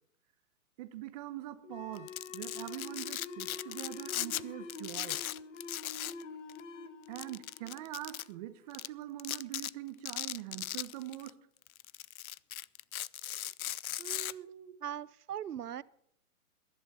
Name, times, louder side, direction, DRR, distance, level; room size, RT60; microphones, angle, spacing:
voice 1, 0.8-5.2 7.1-11.4 14.4-14.8, right 14 dB, 25° right, 12 dB, 0.9 m, -43 dB
sound 1, 1.6-8.9, left 4 dB, 55° left, 1.5 m, -47 dB
Domestic sounds home sounds, 1.9-4.4 4.7-6.2 6.5-6.6 7.2-8.2 8.7-8.9 9.2-9.7 10.1-11.3 11.7-14.3, left 12 dB, 70° left, 0.5 m, -38 dB
voice 2, 14.0-14.5 14.8-15.8, right 10 dB, 90° right, 20 dB, 0.7 m, -40 dB
19.5 x 11.0 x 4.2 m, 0.71 s
hypercardioid pair, 140°, 45 cm